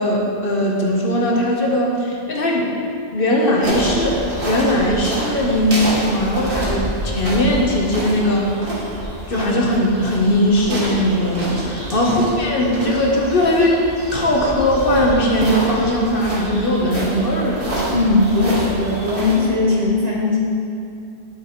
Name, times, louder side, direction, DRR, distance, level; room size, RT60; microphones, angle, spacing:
voice 1, 0.0-2.8 3.1-8.6 9.3-13.8 14.1-17.7, equal, 55° left, -2 dB, 1.1 m, -19 dB
sound 1, 3.6-19.4, right 1 dB, 55° right, 1.9 m, -28 dB
voice 2, 17.9-20.4, left 2 dB, 40° right, -4 dB, 1.3 m, -18 dB
11.0 x 6.4 x 3.0 m, 2.6 s
omnidirectional pair, 1.1 m